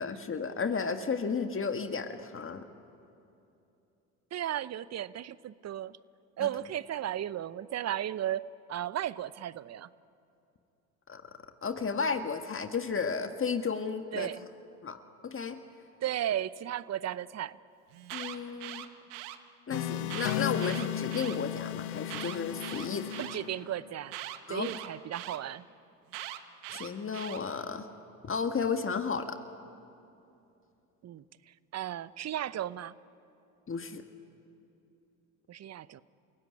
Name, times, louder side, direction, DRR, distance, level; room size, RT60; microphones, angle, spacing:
voice 1, 0.0-2.6 6.4-6.5 11.1-11.2 11.6-14.3 14.8-15.0 15.2-15.6 18.1-18.9 19.7-23.2 24.5-24.7 26.7-27.9 28.2-29.4 33.7-34.0, left 5 dB, 30° left, 7 dB, 1.6 m, -33 dB
voice 2, 4.3-6.0 6.4-8.4 8.7-9.9 14.1-14.4 16.0-17.6 23.2-24.2 24.5-25.6 31.0-31.2 31.7-32.9 35.5-36.0, right 11 dB, 35° right, 18 dB, 0.8 m, -35 dB
Alarm, 17.9-19.4 20.0-21.4 22.0-23.4 24.1-25.4 26.1-27.4, right 14 dB, 70° right, 1.5 m, -41 dB
sound 1, 19.7-24.0, left 12 dB, 75° left, 1.3 m, -35 dB
30.0 x 17.0 x 9.9 m, 2.7 s
hypercardioid pair, 70°, 44 cm